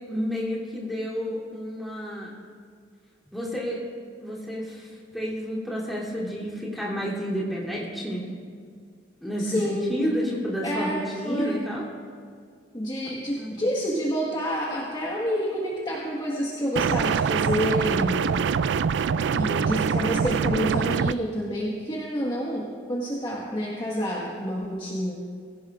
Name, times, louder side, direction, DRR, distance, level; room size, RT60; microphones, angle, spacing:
voice 1, 0.1-2.3 3.3-3.8 4.2-8.2 9.2-11.8 13.4-13.7, equal, ahead, -6 dB, 3.1 m, -30 dB
voice 2, 9.4-9.9 10.6-11.6 12.7-18.5 19.3-25.1, equal, 25° left, -4 dB, 1.5 m, -28 dB
sound 1, 16.8-21.1, right 6 dB, 70° right, 0.3 m, -24 dB
23.5 x 16.0 x 2.5 m, 2.1 s
head